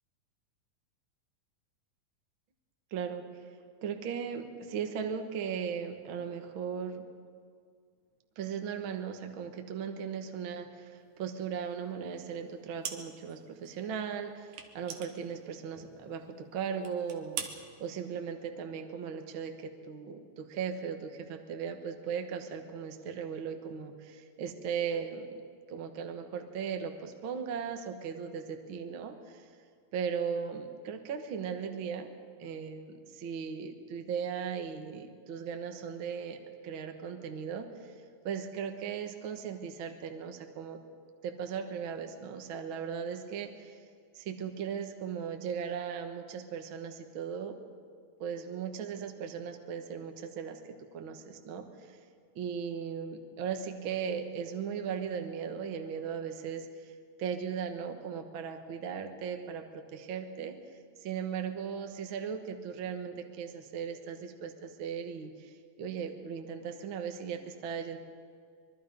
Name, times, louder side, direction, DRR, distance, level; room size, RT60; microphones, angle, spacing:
voice 1, 2.9-3.2 3.8-7.0 8.4-17.5 17.8-25.3 25.7-29.5 29.9-32.1 32.4-37.9 38.2-40.8 41.2-43.8 44.1-47.6 48.2-51.9 52.3-60.6 61.0-68.0, right 7 dB, 55° right, 5 dB, 1.5 m, -37 dB
sound 1, 12.8-13.4 13.6-13.7 14.5-16.0 16.3-16.4 16.8-17.6, right 8 dB, 75° right, 3.0 m, -41 dB
25.0 x 22.5 x 5.3 m, 2.1 s
omnidirectional pair, 3.9 m